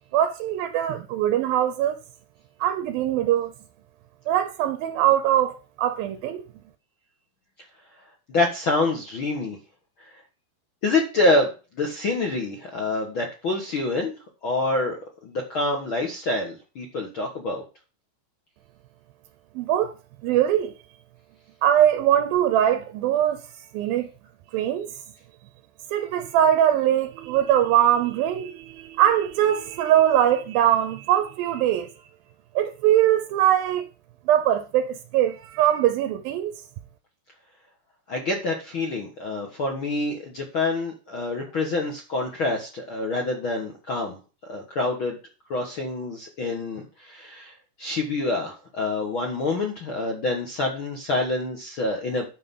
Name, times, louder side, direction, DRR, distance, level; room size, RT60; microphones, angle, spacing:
voice 1, 0.1-2.0 2.6-3.5 4.3-6.4 19.6-19.9 20.2-20.7 21.6-23.4 23.7-24.1 24.5-24.9 25.9-31.9 32.6-33.9 34.3-36.5, right 11 dB, 80° right, 2.2 m, -22 dB
voice 2, 8.3-9.6 10.8-11.5 11.8-14.1 14.4-15.0 15.2-17.6 38.1-44.2 44.5-45.2 45.5-47.5 47.8-52.2, left 2 dB, 75° left, 1.1 m, -26 dB
12.0 x 5.2 x 5.5 m
omnidirectional pair, 4.9 m